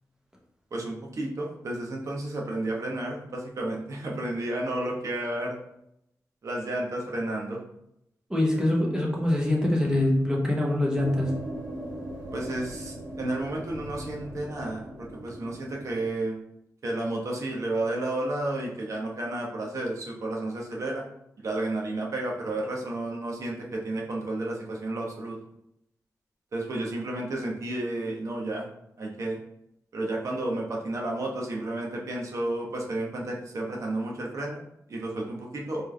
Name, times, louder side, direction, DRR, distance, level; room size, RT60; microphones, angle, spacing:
voice 1, 0.7-5.6 6.4-7.6 12.3-16.4 16.8-21.1 21.4-25.4 26.5-28.7 29.0-29.4 29.9-35.8, right 2 dB, 55° right, -1 dB, 1.0 m, -32 dB
voice 2, 8.3-11.3, left 1 dB, 10° right, -2 dB, 1.0 m, -24 dB
sound 1, 11.0-16.1, right 1 dB, 80° right, 1.7 m, -39 dB
4.2 x 3.4 x 3.3 m, 0.79 s
wide cardioid pair, 135°, 6 cm